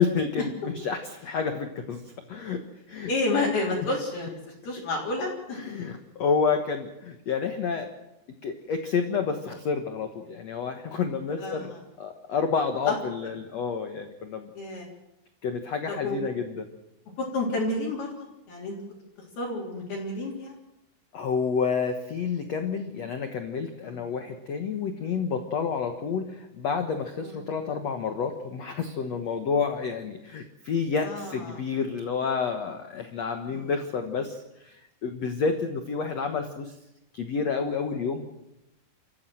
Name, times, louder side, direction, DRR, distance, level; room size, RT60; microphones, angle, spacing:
voice 1, 0.0-2.0 2.3-2.6 2.9-3.1 5.5-7.9 8.4-11.7 12.0-14.5 15.4-16.7 21.1-36.7 37.1-38.3, left 5 dB, 85° left, 6 dB, 1.4 m, -29 dB
voice 2, 3.1-4.3 4.6-5.6 11.4-11.8 12.9-13.0 14.6-14.9 15.9-16.2 17.2-18.1 18.5-18.7 19.4-20.6 23.8-24.0 27.2-27.4 31.0-31.6 33.5-33.7, left 2 dB, 60° left, -4 dB, 5.2 m, -30 dB
27.0 x 14.5 x 7.7 m, 0.89 s
omnidirectional pair, 5.3 m